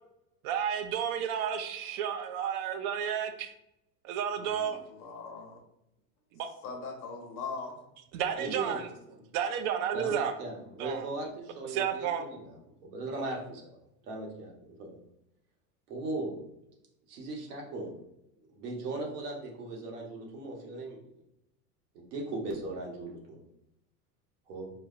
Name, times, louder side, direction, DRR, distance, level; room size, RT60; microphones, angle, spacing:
voice 1, 0.4-3.5 4.0-4.8 6.4-6.5 8.1-8.9 9.3-10.3 10.8-11.1 11.7-12.3, right 8 dB, 65° right, 7 dB, 0.7 m, -31 dB
voice 2, 4.4-5.6 6.6-7.8, left 4 dB, 45° left, 3 dB, 0.9 m, -41 dB
voice 3, 8.4-8.8 9.9-12.5 12.8-13.7 14.0-14.9 15.9-16.3 17.1-17.9 18.5-21.0 21.9-23.4 24.5-24.7, right 2 dB, 90° right, -1 dB, 1.3 m, -38 dB
4.7 x 2.2 x 2.5 m, 0.83 s
supercardioid pair, 120°, 45 cm